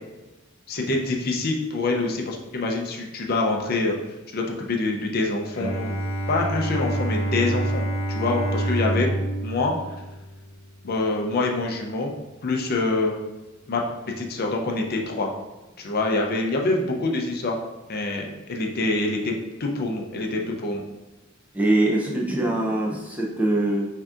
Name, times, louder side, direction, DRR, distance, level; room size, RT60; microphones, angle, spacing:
voice 1, 0.7-4.0 4.3-6.0 6.3-7.8 8.1-9.1 9.4-9.7 10.8-12.1 12.4-13.2 13.7-13.8 14.2-15.3 15.8-17.6 17.9-19.3 19.6-20.8, left 2 dB, 50° left, 1 dB, 0.5 m, -25 dB
Bowed string instrument, 5.5-10.8, right 1 dB, 90° left, 0.7 m, -27 dB
voice 2, 21.5-23.9, right 1 dB, 5° right, -3 dB, 0.5 m, -23 dB
5.7 x 2.7 x 2.4 m, 1.1 s
head